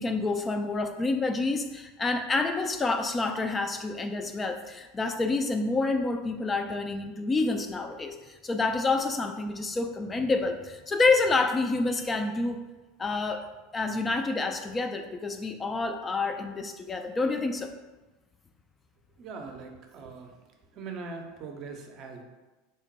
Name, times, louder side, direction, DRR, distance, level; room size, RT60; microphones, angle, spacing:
voice 1, 0.0-12.6 13.0-17.7, left 3 dB, 20° left, 6 dB, 0.3 m, -28 dB
voice 2, 19.2-20.3 20.7-22.2, right 4 dB, 50° right, 3 dB, 0.6 m, -41 dB
3.4 x 2.1 x 4.1 m, 1.1 s
hypercardioid pair, 85°, 0 cm